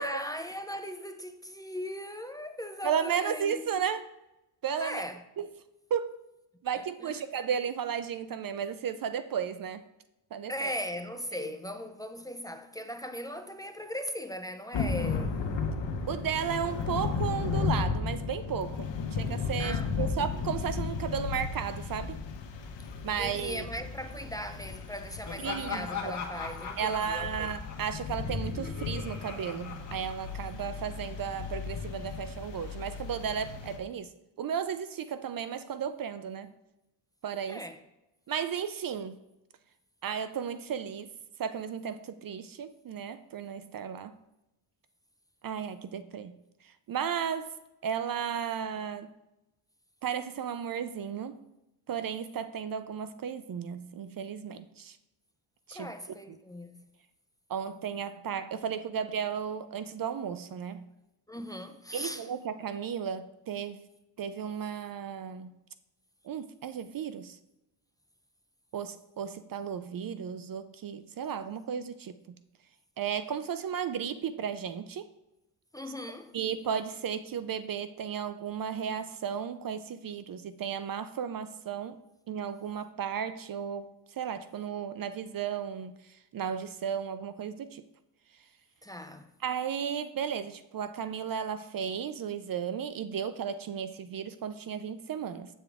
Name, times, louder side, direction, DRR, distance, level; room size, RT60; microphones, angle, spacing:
voice 1, 0.0-3.8 4.8-5.2 6.7-7.3 10.5-15.3 19.6-20.1 23.2-27.5 37.5-37.8 55.7-56.8 61.3-62.3 75.7-76.3 88.8-89.3, equal, 10° left, 0.6 m, -39 dB
voice 2, 2.8-4.1 4.6-5.0 5.4-5.5 5.9-6.2 6.6-9.8 10.3-10.7 11.3-11.5 16.1-22.2 23.0-23.6 25.4-26.2 26.8-34.1 34.4-36.5 37.2-37.6 38.3-39.1 40.0-41.1 41.4-44.2 45.4-46.3 46.9-47.5 47.8-49.1 50.0-51.4 51.9-55.0 55.7-55.9 57.5-60.9 61.9-63.8 64.2-65.5 66.2-67.4 68.7-72.2 73.0-75.1 76.3-82.0 82.3-83.9 84.2-85.9 86.3-87.8 89.4-95.5, right 7 dB, 50° right, 0.5 m, -34 dB
Thunder / Rain, 14.7-33.8, left 5 dB, 70° left, 1.1 m, -35 dB
Laughter, 25.2-30.7, left 5 dB, 40° left, 1.5 m, -40 dB
8.1 x 7.1 x 3.5 m
cardioid pair, 90°, 45 cm